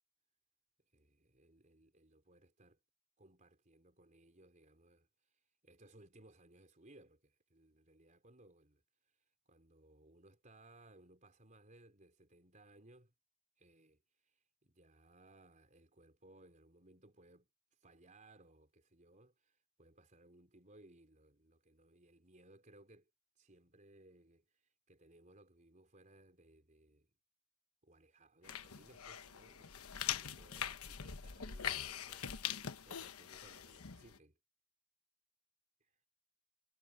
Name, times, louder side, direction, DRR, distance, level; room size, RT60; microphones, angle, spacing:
voice 1, 0.8-2.8 3.2-13.1 13.6-23.1 23.3-27.1 27.8-32.5 32.8-34.4 35.8-36.0, right 1 dB, 35° right, 4.4 m, -64 dB
sound 1, 28.4-34.2, left 9 dB, 85° left, 1.1 m, -43 dB
head